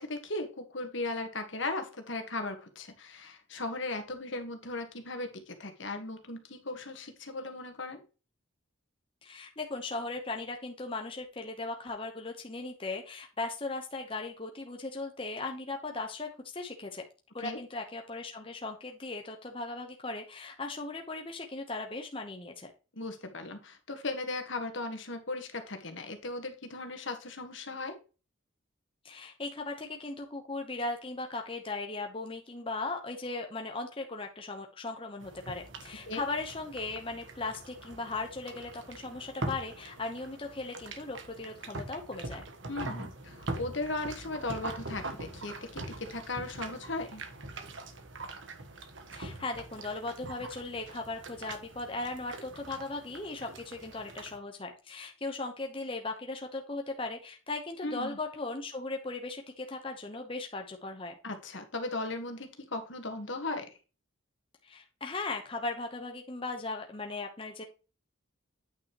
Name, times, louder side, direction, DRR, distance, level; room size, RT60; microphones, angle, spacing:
voice 1, 0.0-8.0 17.4-17.6 22.9-28.0 36.1-36.2 42.7-47.2 57.8-58.2 61.2-63.6, left 2 dB, 65° left, 6 dB, 1.7 m, -37 dB
voice 2, 9.2-17.0 17.3-22.7 29.0-42.4 49.1-61.1 64.6-67.6, left 3 dB, 25° left, 3 dB, 1.0 m, -38 dB
sound 1, 35.2-54.4, right 2 dB, 65° right, 1.4 m, -43 dB
9.0 x 5.7 x 3.1 m, 0.32 s
head